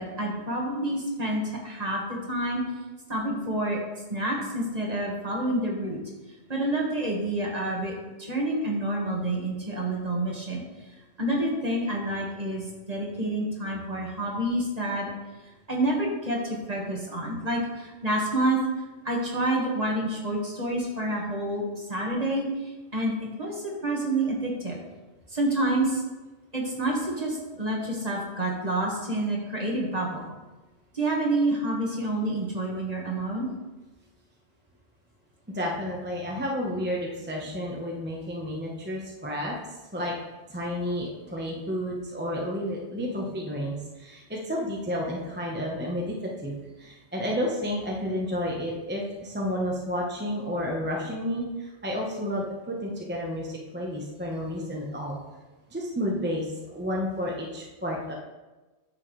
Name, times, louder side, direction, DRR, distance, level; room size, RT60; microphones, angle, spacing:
voice 1, 0.0-2.6 3.1-3.8 4.1-6.0 6.5-10.6 11.2-15.1 15.7-18.6 19.0-24.8 25.3-26.0 26.5-30.3 30.9-33.5, right 1 dB, 35° right, -2 dB, 1.8 m, -28 dB
voice 2, 35.5-39.5 39.9-40.1 40.5-46.1 46.4-55.2 55.7-58.1, equal, 10° right, -3 dB, 1.0 m, -31 dB
9.6 x 7.3 x 3.3 m, 1.2 s
omnidirectional pair, 1.2 m